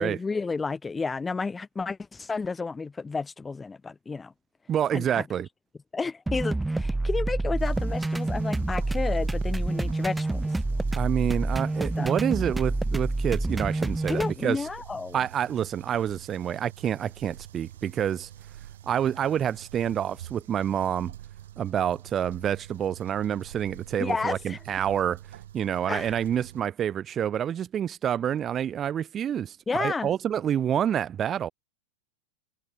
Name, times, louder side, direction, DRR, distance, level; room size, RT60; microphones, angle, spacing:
voice 1, 0.0-4.3 4.9-5.2 5.9-10.4 12.0-12.1 14.1-15.2 24.0-24.6 25.9-26.2 29.7-30.1, left 4 dB, 15° left, 3.2 m, -31 dB
voice 2, 4.7-5.5 10.9-14.6 15.1-18.3 18.9-21.1 21.6-25.2 25.5-31.5, right 9 dB, 25° right, 3.6 m, -28 dB
sound 1, 6.3-14.3, right 2 dB, 5° right, 0.9 m, -27 dB
sound 2, 7.6-26.6, right 12 dB, 60° right, 6.8 m, -46 dB
figure-of-eight pair, 90°, 0 cm